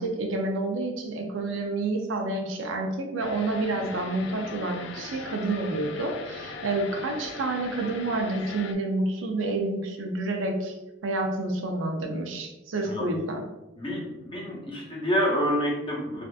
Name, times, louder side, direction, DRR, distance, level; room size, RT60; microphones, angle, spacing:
voice 1, 0.0-10.8 11.0-13.4, right 2 dB, 80° right, 2 dB, 0.5 m, -29 dB
sound 1, 3.2-8.7, left 4 dB, 65° left, 0.3 m, -40 dB
voice 2, 13.8-16.2, equal, 25° left, -4 dB, 0.9 m, -28 dB
3.3 x 2.6 x 2.4 m, 1.0 s
head